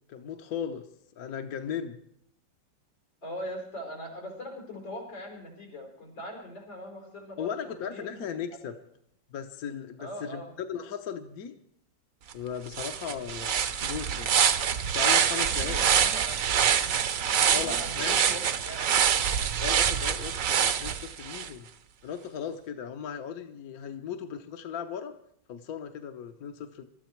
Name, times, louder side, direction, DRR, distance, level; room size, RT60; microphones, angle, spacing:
voice 1, 0.1-0.9 1.2-2.0 7.4-8.8 9.3-10.4 10.7-11.5 12.3-14.4 14.9-16.1 17.5-18.2 19.6-21.7 22.0-25.1 25.5-26.8, left 8 dB, 55° left, 6 dB, 1.4 m, -37 dB
voice 2, 3.2-8.3 10.0-10.5 15.4-17.0 17.3-18.9, equal, 85° left, 1 dB, 5.7 m, -41 dB
sound 1, 12.3-12.4 12.7-21.5, right 8 dB, 55° right, 1.1 m, -25 dB
24.0 x 13.0 x 4.6 m, 0.71 s
omnidirectional pair, 2.0 m